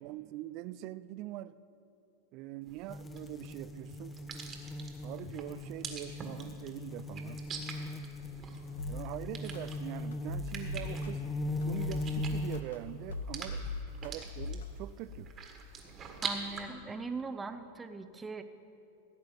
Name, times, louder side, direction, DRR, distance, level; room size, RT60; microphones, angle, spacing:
voice 1, 0.0-1.5 2.3-4.2 5.0-7.4 8.9-11.3 11.6-13.7 14.0-15.3, right 14 dB, 50° right, 16 dB, 0.4 m, -43 dB
sound 1, 2.7-16.6, right 5 dB, 30° right, 1.7 m, -46 dB
sound 2, 2.9-12.6, left 2 dB, 20° left, 0.5 m, -39 dB
sound 3, 8.8-9.0 9.5-9.6 10.1-11.1 11.6-12.8 13.1-14.1 14.4-14.6, left 1 dB, 85° left, 1.1 m, -38 dB
voice 2, 16.2-18.4, right 4 dB, 15° right, 9 dB, 0.8 m, -40 dB
16.0 x 7.7 x 5.2 m, 2.8 s
hypercardioid pair, 105°, 0 cm